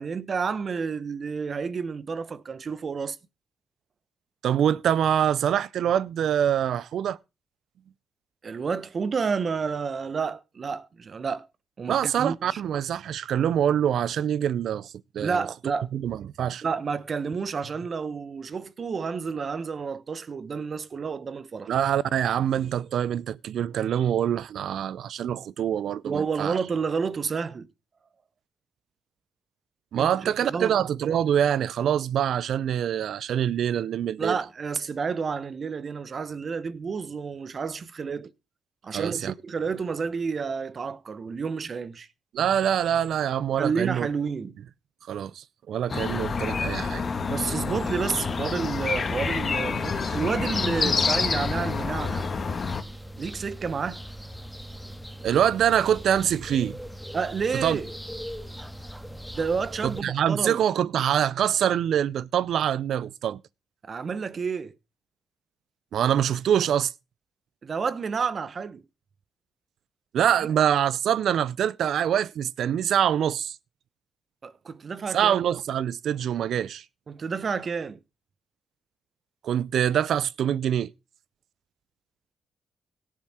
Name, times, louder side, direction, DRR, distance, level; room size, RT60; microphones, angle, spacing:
voice 1, 0.0-3.2 8.4-11.5 11.8-12.6 15.2-15.9 16.6-21.7 26.0-27.7 30.0-30.8 34.2-38.3 38.8-42.1 43.6-44.5 47.2-52.2 53.2-54.0 57.1-57.9 59.3-60.6 63.8-64.7 67.6-68.8 70.4-70.5 74.4-75.3 77.1-78.0, right 5 dB, 50° right, 1.0 m, -30 dB
voice 2, 4.4-7.2 11.9-15.5 15.9-16.6 21.7-26.6 29.9-34.4 38.9-39.3 42.3-44.1 45.1-47.0 55.2-56.8 57.5-57.8 59.8-63.4 65.9-66.9 70.1-73.6 75.1-76.8 79.4-80.9, right 9 dB, 75° right, 0.5 m, -25 dB
sound 1, 45.9-52.8, left 5 dB, 50° left, 1.8 m, -28 dB
sound 2, 50.4-60.0, equal, ahead, 1.7 m, -40 dB
17.0 x 7.5 x 4.3 m
supercardioid pair, 60°, 0 cm